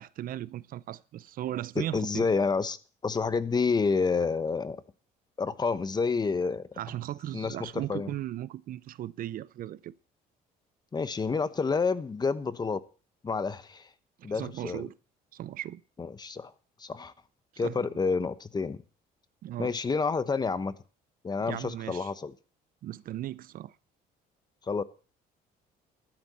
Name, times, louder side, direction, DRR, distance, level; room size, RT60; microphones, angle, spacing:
voice 1, 0.0-2.3 6.8-9.9 14.2-14.9 15.3-15.8 17.5-17.9 19.4-19.8 21.4-22.1 22.8-23.7, right 13 dB, 55° right, 0.5 m, -37 dB
voice 2, 1.8-2.8 3.0-4.8 5.4-6.7 7.3-8.1 10.9-12.8 13.2-13.9 14.2-14.8 16.0-16.5 16.8-17.1 17.6-18.8 19.6-20.8 21.2-22.3 24.7-24.8, left 4 dB, 25° left, 0.9 m, -29 dB
14.0 x 12.0 x 4.2 m
cardioid pair, 110°, 17 cm